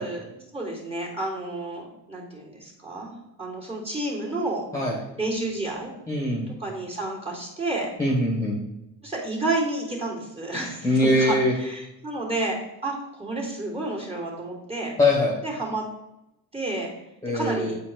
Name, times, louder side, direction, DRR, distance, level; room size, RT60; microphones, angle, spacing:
voice 1, 0.0-3.1 3.4-4.6 5.2-5.9 6.5-7.9 9.0-14.9 15.4-15.8 16.5-16.9 17.3-17.8, right 2 dB, 15° right, -3 dB, 3.1 m, -30 dB
voice 2, 6.1-6.5 8.0-8.6 10.8-11.5 15.0-15.3 17.2-17.7, left 1 dB, 10° left, -4 dB, 2.2 m, -22 dB
8.1 x 4.5 x 4.7 m, 0.88 s
supercardioid pair, 80°, 40 cm